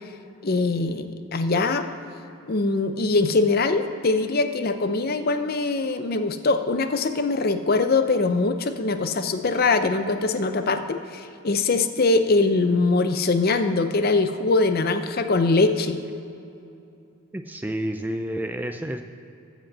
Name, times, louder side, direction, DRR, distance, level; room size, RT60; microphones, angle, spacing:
voice 1, 0.4-1.9 2.5-16.0, left 3 dB, 40° left, 9 dB, 0.5 m, -22 dB
voice 2, 17.3-19.0, right 1 dB, 10° right, 6 dB, 0.3 m, -29 dB
14.0 x 5.1 x 7.4 m, 2.7 s
head